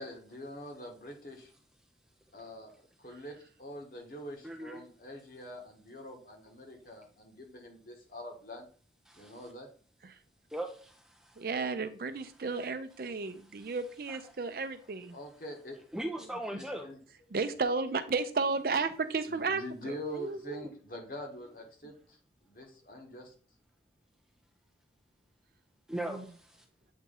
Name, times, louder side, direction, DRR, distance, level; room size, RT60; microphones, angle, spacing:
voice 1, 0.0-1.5 2.3-8.7 9.1-9.7 15.1-15.8 16.5-17.0 19.3-22.2 22.4-23.3, equal, 50° left, 2 dB, 1.3 m, -44 dB
voice 2, 4.4-4.8 9.1-9.4 10.5-11.4 13.5-13.7 14.1-14.2 15.9-16.9 25.9-26.6, right 1 dB, 5° right, 3 dB, 0.4 m, -39 dB
voice 3, 11.4-15.1 16.5-16.6 17.3-20.6 25.9-26.2, right 4 dB, 55° right, 10 dB, 0.5 m, -33 dB
8.1 x 3.1 x 3.7 m, 0.42 s
head